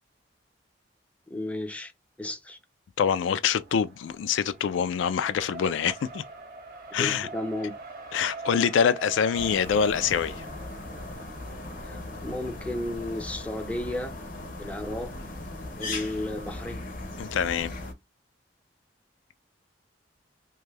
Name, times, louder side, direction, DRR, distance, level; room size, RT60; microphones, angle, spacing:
voice 1, 1.3-1.9 2.2-2.6 7.0-7.7 11.8-14.1 14.6-15.1 15.8-16.8, left 1 dB, 5° left, 0.4 m, -33 dB
voice 2, 3.0-6.2 6.9-7.3 8.1-10.5 17.2-17.7, left 7 dB, 85° left, 0.3 m, -25 dB
Race car auto racing, 3.5-14.5, right 2 dB, 55° right, 0.7 m, -44 dB
sound 1, 9.3-17.9, left 2 dB, 50° left, 0.6 m, -38 dB
2.6 x 2.3 x 3.2 m
head